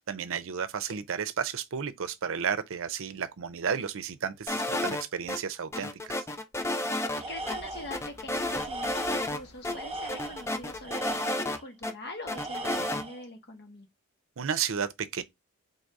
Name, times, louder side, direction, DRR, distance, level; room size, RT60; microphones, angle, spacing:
voice 1, 0.0-6.2 14.4-15.2, right 7 dB, 65° right, 0.6 m, -32 dB
sound 1, 4.5-5.4 5.7-7.2 7.5-7.6 7.9-9.4 9.6-9.7 10.1-11.9 12.3-13.0, left 1 dB, 15° left, 0.5 m, -31 dB
Tools, 7.2-8.1 8.5-9.3 9.7-11.6 12.3-13.2, right 2 dB, 25° right, 0.9 m, -39 dB
voice 2, 7.3-13.9, left 2 dB, 50° left, 1.2 m, -43 dB
sound 2, 7.4-10.9, equal, 85° left, 1.7 m, -53 dB
4.0 x 2.7 x 4.6 m
head